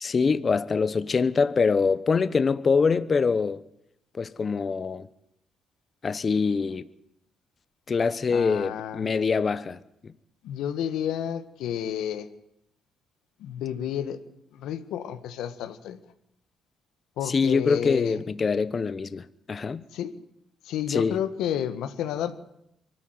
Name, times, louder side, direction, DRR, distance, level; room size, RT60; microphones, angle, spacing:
voice 1, 0.0-3.6 4.1-5.1 6.0-6.8 7.9-10.1 17.2-19.8 20.9-21.2, left 5 dB, 40° left, 1.0 m, -24 dB
voice 2, 8.3-9.1 10.4-12.3 13.4-14.2 14.5-16.0 17.2-18.2 19.9-20.1 20.7-22.3, left 10 dB, 85° left, 1.7 m, -31 dB
24.0 x 14.0 x 9.7 m
cardioid pair, 90°, 0 cm